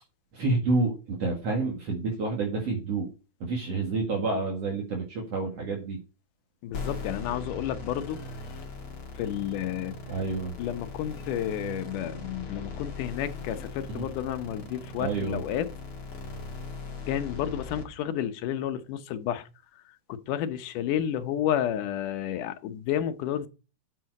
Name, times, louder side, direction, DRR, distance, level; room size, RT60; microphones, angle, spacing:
voice 1, 0.3-3.1 3.4-6.0 10.1-10.5 13.9-14.1 15.0-15.4, right 3 dB, 55° right, 3.0 m, -29 dB
voice 2, 6.6-8.2 9.2-10.0 10.6-15.7 17.1-19.5 20.1-23.5, left 10 dB, 90° left, 2.5 m, -31 dB
sound 1, 6.7-17.8, left 4 dB, 45° left, 2.7 m, -39 dB
9.4 x 7.5 x 4.8 m
omnidirectional pair, 3.6 m